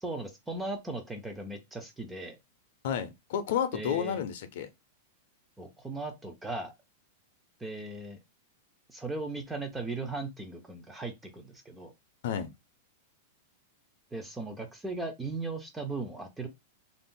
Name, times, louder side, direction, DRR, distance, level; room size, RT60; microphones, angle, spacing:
voice 1, 0.0-2.4 3.7-4.2 5.6-6.7 7.6-8.2 8.9-11.9 14.1-16.5, right 2 dB, 5° right, 0.3 m, -37 dB
voice 2, 2.8-4.7 12.2-12.5, left 8 dB, 50° left, 0.5 m, -31 dB
2.5 x 2.0 x 3.6 m
supercardioid pair, 180°, 0 cm